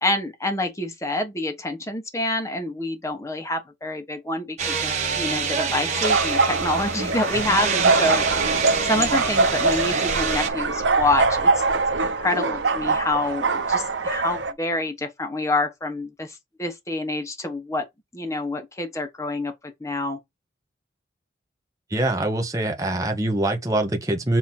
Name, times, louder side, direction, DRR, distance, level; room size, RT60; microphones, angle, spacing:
voice 1, 0.0-8.3 8.8-11.6 12.0-17.9 18.1-20.2, left 2 dB, 15° left, 1.2 m, -27 dB
sound 1, 4.6-10.5, right 5 dB, 40° right, 1.4 m, -26 dB
sound 2, 6.0-14.5, right 3 dB, 75° right, 0.8 m, -23 dB
voice 2, 21.9-24.4, right 1 dB, 20° right, 1.1 m, -24 dB
7.5 x 3.0 x 4.2 m
head